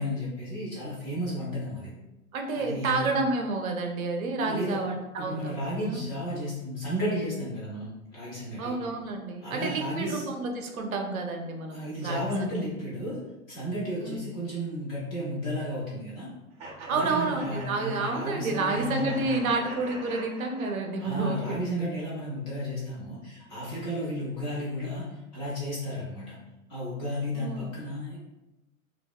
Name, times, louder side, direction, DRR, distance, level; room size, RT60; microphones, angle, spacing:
voice 1, 0.0-1.9 2.5-3.2 4.4-4.8 5.2-8.8 9.4-10.3 11.7-13.2 13.5-16.3 16.9-19.3 21.0-26.3 26.7-28.2, equal, 20° left, -8 dB, 0.4 m, -33 dB
voice 2, 2.3-6.0 8.6-12.2 14.0-14.2 16.9-21.9 27.3-27.8, right 3 dB, 70° right, 3 dB, 0.6 m, -30 dB
sound 1, 16.6-21.2, right 2 dB, 25° right, 0.7 m, -43 dB
2.6 x 2.1 x 2.2 m, 0.98 s
figure-of-eight pair, 110°, 43 cm